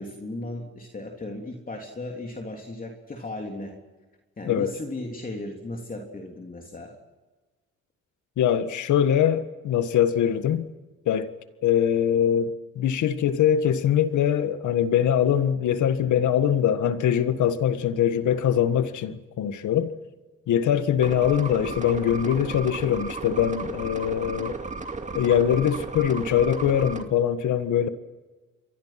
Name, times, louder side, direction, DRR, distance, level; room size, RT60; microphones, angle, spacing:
voice 1, 0.0-3.8 4.4-7.0, left 2 dB, 30° left, 3.4 m, -36 dB
voice 2, 8.4-10.6 11.0-11.3 11.6-19.9 20.5-24.6 25.1-27.9, left 9 dB, 75° left, 1.8 m, -23 dB
sound 1, 21.0-27.0, right 3 dB, 25° right, 2.5 m, -34 dB
29.0 x 23.0 x 6.0 m
cardioid pair, 90°, 30 cm